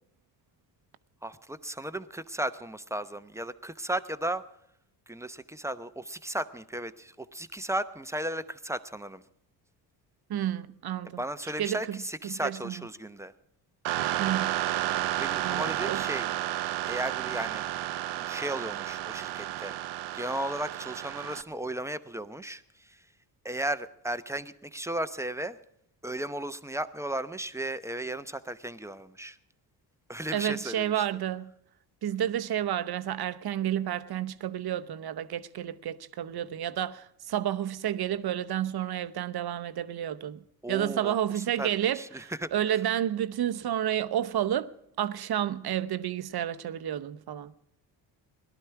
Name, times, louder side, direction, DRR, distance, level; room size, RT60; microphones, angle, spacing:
voice 1, 1.2-4.5 5.1-9.2 11.2-13.3 15.1-16.3 16.9-17.6 18.1-19.8 20.1-23.0 23.4-25.6 26.0-29.4 30.1-31.0 40.6-42.5, right 1 dB, 5° right, 0.8 m, -35 dB
voice 2, 10.3-11.2 11.6-12.0 12.2-12.7 14.2-14.6 15.4-16.1 30.3-31.5 32.0-40.4 40.7-44.7 45.0-47.5, right 11 dB, 50° right, 0.9 m, -30 dB
sound 1, 13.8-21.4, right 14 dB, 80° right, 0.8 m, -32 dB
18.0 x 11.5 x 4.6 m
supercardioid pair, 60°, 48 cm